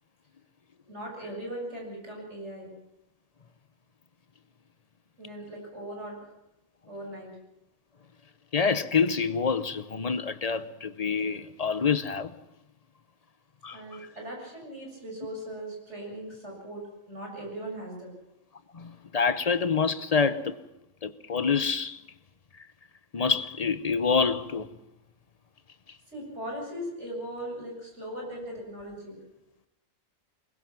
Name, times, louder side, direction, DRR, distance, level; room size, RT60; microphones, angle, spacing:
voice 1, 0.9-2.7 5.2-6.2 6.9-7.3 13.7-18.1 26.1-29.2, right 1 dB, 60° right, 7.7 m, -39 dB
voice 2, 8.5-12.3 13.6-13.8 18.7-20.5 21.0-22.0 23.1-24.7, left 5 dB, 35° left, 0.8 m, -26 dB
23.0 x 21.0 x 6.0 m
omnidirectional pair, 1.4 m